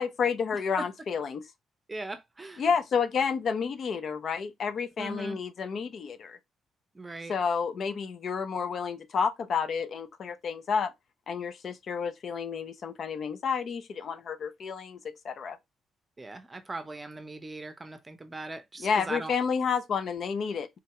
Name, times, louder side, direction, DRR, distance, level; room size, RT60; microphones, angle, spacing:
voice 1, 0.0-1.4 2.6-6.4 7.3-10.9 11.3-15.0 15.2-15.6 18.8-20.7, left 6 dB, 55° left, 0.4 m, -30 dB
voice 2, 1.9-2.7 5.0-5.4 6.9-7.3 16.2-19.3, right 2 dB, 20° right, 0.6 m, -39 dB
3.7 x 2.1 x 2.9 m
cardioid pair, 90°, 0 cm